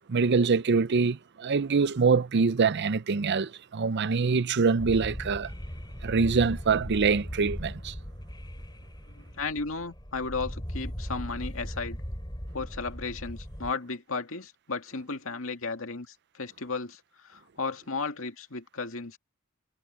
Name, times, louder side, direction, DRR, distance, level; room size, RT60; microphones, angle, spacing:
voice 1, 0.1-5.5 6.0-7.9, right 5 dB, 55° right, 0.5 m, -24 dB
sound 1, 4.8-13.7, equal, 20° left, 3.7 m, -38 dB
voice 2, 9.1-12.0 12.5-17.0 17.3-19.2, left 4 dB, 75° left, 2.2 m, -34 dB
head